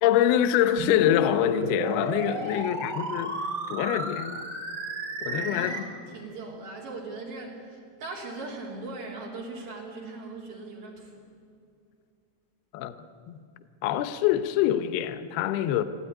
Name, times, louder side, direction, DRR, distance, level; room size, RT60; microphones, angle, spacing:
voice 1, 0.0-3.4 3.7-4.4 5.2-5.8 12.7-13.0 13.3-13.4 13.8-15.8, left 11 dB, 75° left, 2.5 m, -25 dB
sound 1, 0.8-5.8, right 2 dB, 30° right, 2.6 m, -33 dB
voice 2, 2.4-2.7 5.3-11.2, right 3 dB, 55° right, 4.6 m, -40 dB
28.5 x 11.5 x 9.7 m
omnidirectional pair, 5.3 m